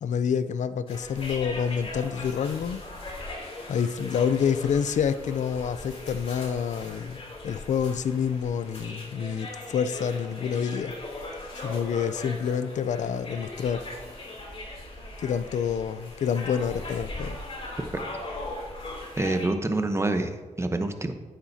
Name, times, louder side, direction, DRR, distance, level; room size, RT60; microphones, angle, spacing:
voice 1, 0.0-2.8 3.7-10.9 11.6-13.8 15.2-17.4, left 7 dB, 65° left, 13 dB, 0.5 m, -28 dB
sound 1, 0.9-19.5, left 2 dB, 45° left, 2.9 m, -39 dB
voice 2, 19.2-21.1, right 2 dB, 20° right, 7 dB, 1.0 m, -27 dB
10.5 x 8.7 x 2.8 m, 1.3 s
cardioid pair, 70°, 14 cm